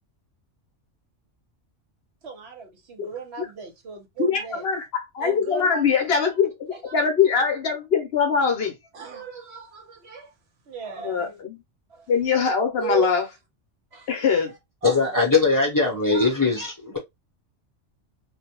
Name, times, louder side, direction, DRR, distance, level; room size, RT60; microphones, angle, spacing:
voice 1, 2.2-4.6 5.2-6.2 6.7-6.9 7.2-7.3 8.9-10.3 10.7-11.4 11.9-12.1 12.8-13.2 13.9-14.6 14.8-15.4 16.1-16.3, right 6 dB, 65° right, 1.1 m, -36 dB
voice 2, 4.2-4.8 5.1-8.7 11.0-11.6 12.1-13.2 14.1-14.5, left 6 dB, 60° left, 0.8 m, -22 dB
voice 3, 14.8-17.0, left 4 dB, 20° left, 0.7 m, -21 dB
2.5 x 2.2 x 2.8 m
omnidirectional pair, 1.2 m